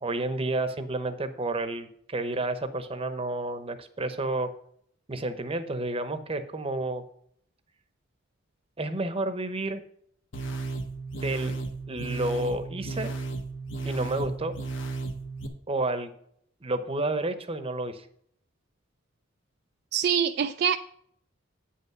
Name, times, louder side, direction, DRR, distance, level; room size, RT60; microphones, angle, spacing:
voice 1, 0.0-4.5 5.1-7.0 8.8-9.8 11.1-11.6 11.9-13.1 13.8-14.5 15.7-16.1 16.6-18.1, right 2 dB, 30° right, 10 dB, 0.8 m, -30 dB
sound 1, 10.3-15.5, right 3 dB, 70° left, 1.1 m, -34 dB
voice 2, 19.9-20.8, right 8 dB, 55° right, 8 dB, 0.3 m, -24 dB
8.6 x 5.6 x 5.9 m, 0.67 s
head